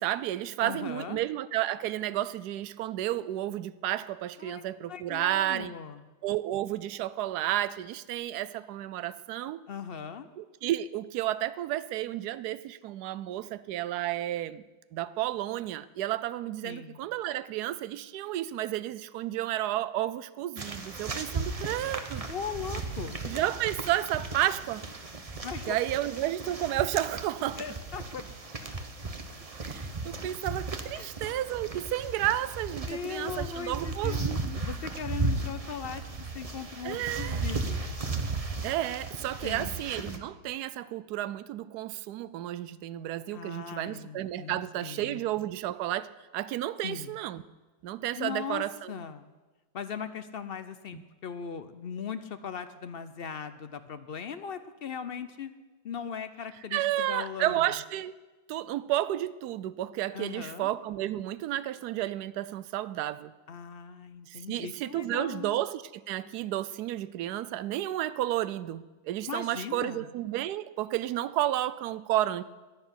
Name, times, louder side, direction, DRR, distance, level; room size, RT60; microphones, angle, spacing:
voice 1, 0.0-5.7 6.2-9.6 10.4-14.6 14.9-22.3 23.2-24.8 25.7-27.6 29.6-34.6 36.8-37.4 38.6-47.4 47.8-48.9 50.9-51.0 56.7-58.1 58.5-63.3 64.3-72.4, right 13 dB, 70° right, 16 dB, 1.1 m, -32 dB
voice 2, 0.6-1.2 4.4-4.6 4.9-6.0 9.7-10.3 16.6-17.0 22.3-23.2 25.4-25.8 27.6-28.2 30.9-31.2 32.9-37.9 39.4-39.8 43.3-45.2 46.8-47.1 48.2-49.3 49.7-55.5 55.8-57.6 60.1-60.7 63.5-65.6 69.3-70.1, left 7 dB, 65° left, 11 dB, 0.5 m, -39 dB
sound 1, 20.6-40.2, right 3 dB, 25° right, 0.8 m, -36 dB
11.5 x 10.0 x 9.7 m, 1.2 s
omnidirectional pair, 1.9 m